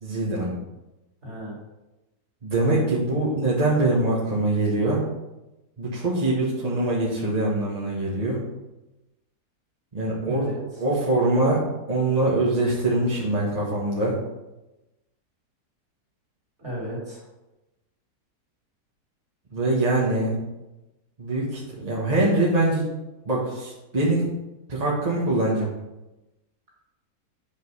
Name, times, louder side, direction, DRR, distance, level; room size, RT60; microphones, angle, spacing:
voice 1, 0.0-0.6 2.4-5.0 5.8-8.4 9.9-10.5 10.8-14.2 19.5-20.4 21.2-22.8 23.2-24.3 24.7-25.7, right 2 dB, 25° right, -6 dB, 1.3 m, -23 dB
voice 2, 1.2-1.6 10.2-10.6 16.6-17.2, equal, 45° right, -5 dB, 3.1 m, -34 dB
5.3 x 5.2 x 6.5 m, 1.0 s
omnidirectional pair, 1.7 m